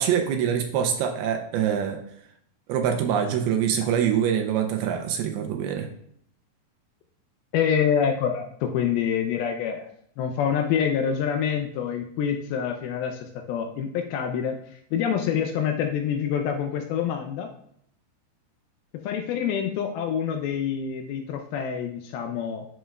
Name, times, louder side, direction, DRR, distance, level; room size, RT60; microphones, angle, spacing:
voice 1, 0.0-2.0 2.7-5.9, right 8 dB, 80° right, 4 dB, 2.4 m, -24 dB
voice 2, 7.5-9.8 10.2-14.6 14.9-17.5 18.9-22.7, left 8 dB, 80° left, 5 dB, 2.3 m, -26 dB
12.0 x 4.5 x 2.3 m, 0.67 s
omnidirectional pair, 4.8 m